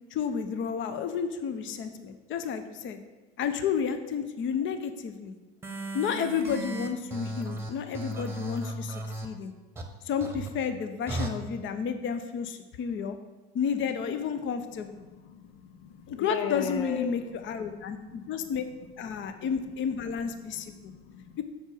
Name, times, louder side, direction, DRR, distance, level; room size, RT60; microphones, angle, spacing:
voice 1, 0.1-3.0 3.4-5.3 5.9-9.5 10.0-13.2 13.5-15.0 16.1-18.6 19.0-20.9 21.4-21.5, left 7 dB, 40° left, 9 dB, 0.7 m, -31 dB
sound 1, 5.6-9.3 9.8-9.9 10.2-10.5 11.1-11.3, right 1 dB, 10° right, 1.2 m, -35 dB
voice 2, 15.2-17.2 17.8-18.4 19.3-19.5 20.5-21.4, left 8 dB, 75° left, 8 dB, 0.7 m, -38 dB
6.4 x 4.9 x 6.4 m, 1.2 s
hypercardioid pair, 85°, 29 cm